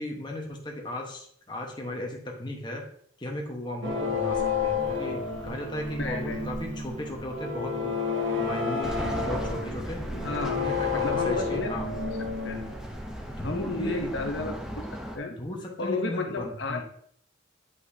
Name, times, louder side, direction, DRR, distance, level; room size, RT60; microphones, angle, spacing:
voice 1, 0.0-2.8 3.2-7.9 8.4-10.0 10.5-11.9 13.4-14.1 15.3-16.8, left 1 dB, 20° left, 0 dB, 1.1 m, -36 dB
sound 1, 3.8-13.4, left 5 dB, 65° right, 0.8 m, -31 dB
sound 2, 4.8-15.0, right 1 dB, 25° right, 2.8 m, -42 dB
voice 2, 6.0-6.5 10.2-10.7 10.9-11.7 12.4-12.6 13.4-14.6 15.1-15.4 15.8-16.8, left 3 dB, 55° left, 4 dB, 0.8 m, -31 dB
sound 3, 8.8-15.2, equal, 5° right, 0.7 m, -37 dB
8.4 x 5.4 x 2.8 m, 0.63 s
head